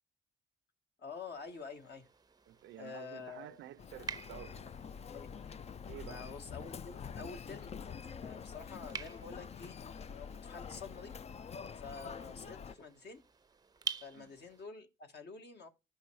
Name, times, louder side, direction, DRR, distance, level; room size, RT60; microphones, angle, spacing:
voice 1, 1.0-2.1 2.8-3.6 5.0-5.3 6.1-7.7 8.2-11.2 11.7-13.3 14.0-15.7, left 4 dB, 55° left, 1.7 m, -48 dB
sound 1, 1.1-14.7, right 6 dB, 20° right, 0.6 m, -49 dB
voice 2, 2.5-4.7 5.9-6.3 14.1-14.3, right 12 dB, 75° right, 0.6 m, -50 dB
Human voice, 3.8-12.7, left 6 dB, 35° left, 0.4 m, -46 dB
12.5 x 5.5 x 4.7 m
cardioid pair, 90°, 20 cm